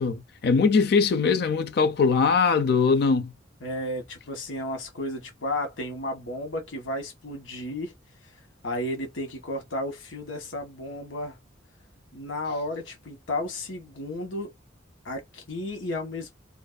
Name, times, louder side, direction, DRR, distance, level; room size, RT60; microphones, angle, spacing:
voice 1, 0.0-3.3, left 5 dB, 55° left, 0.4 m, -21 dB
voice 2, 3.6-7.9 8.6-11.4 12.1-14.5 15.0-16.3, left 1 dB, 80° left, 1.1 m, -33 dB
2.5 x 2.4 x 2.2 m
head